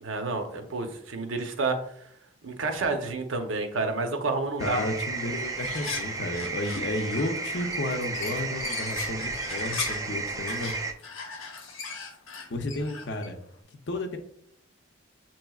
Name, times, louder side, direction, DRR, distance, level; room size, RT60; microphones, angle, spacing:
voice 1, 0.0-1.8 2.4-4.8, right 3 dB, 75° right, 5 dB, 0.7 m, -29 dB
voice 2, 4.6-10.8 12.5-13.4 13.9-14.2, left 1 dB, 60° left, 6 dB, 0.6 m, -32 dB
sound 1, 4.6-10.9, right 3 dB, 15° right, 0.4 m, -33 dB
sound 2, 4.9-5.0 5.3-10.1 10.5-13.4, left 5 dB, 90° left, 0.8 m, -38 dB
6.9 x 3.0 x 2.3 m, 0.68 s
head